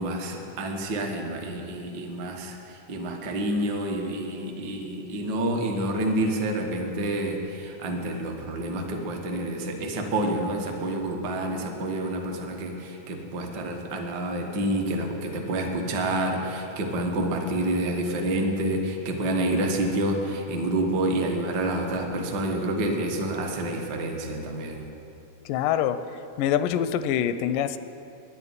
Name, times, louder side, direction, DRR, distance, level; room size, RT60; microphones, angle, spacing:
voice 1, 0.0-24.9, right 1 dB, 55° right, 2 dB, 1.2 m, -28 dB
voice 2, 25.5-27.8, left 10 dB, 85° left, 12 dB, 2.2 m, -25 dB
10.0 x 9.7 x 9.5 m, 2.8 s
omnidirectional pair, 3.7 m